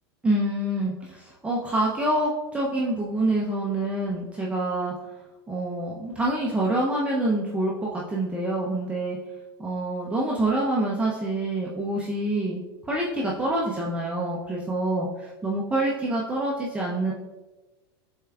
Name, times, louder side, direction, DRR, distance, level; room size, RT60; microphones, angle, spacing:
voice 1, 0.2-4.9 5.5-9.2 9.6-17.1, right 1 dB, 10° right, -5 dB, 0.5 m, -26 dB
6.5 x 3.6 x 2.3 m, 1.2 s
supercardioid pair, 125°, 13 cm